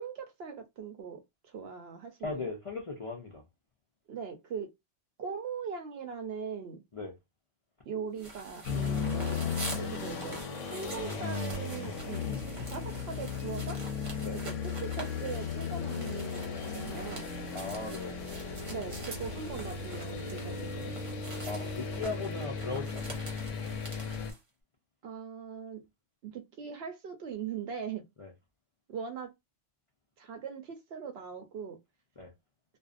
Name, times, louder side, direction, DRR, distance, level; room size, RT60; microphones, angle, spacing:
voice 1, 0.0-2.5 4.1-4.7 5.2-6.8 7.9-9.5 9.9-12.2 12.7-13.8 14.4-14.5 14.8-17.4 18.7-21.0 25.0-25.8 26.2-28.1 28.9-29.3 30.2-31.8, right 6 dB, 65° right, 0.7 m, -40 dB
voice 2, 2.2-3.4 6.9-7.2 9.7-9.9 14.2-14.4 17.5-18.2 21.5-23.3 28.2-28.3 32.2-32.3, left 3 dB, 55° left, 0.3 m, -38 dB
sound 1, 8.2-24.4, right 2 dB, 30° right, 0.7 m, -46 dB
sound 2, 8.7-24.3, left 5 dB, 85° left, 1.0 m, -36 dB
2.5 x 2.0 x 2.4 m
omnidirectional pair, 1.3 m